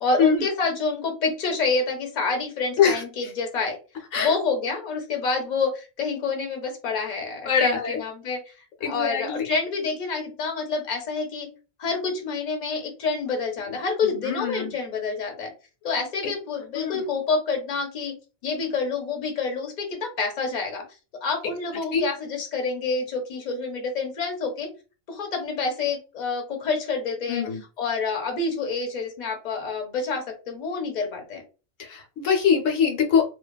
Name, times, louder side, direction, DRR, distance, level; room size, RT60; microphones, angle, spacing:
voice 1, 0.0-3.8 4.2-8.6 8.8-11.5 11.8-15.5 15.8-18.1 18.4-20.8 21.2-24.7 25.1-31.4, left 4 dB, 40° left, 2 dB, 0.7 m, -28 dB
voice 2, 7.5-8.0 8.8-9.5 14.0-14.7 16.7-17.0 21.9-22.0 27.3-27.6 31.8-33.2, left 7 dB, 75° left, 2 dB, 0.9 m, -23 dB
2.7 x 2.2 x 2.2 m, 0.33 s
omnidirectional pair, 1.3 m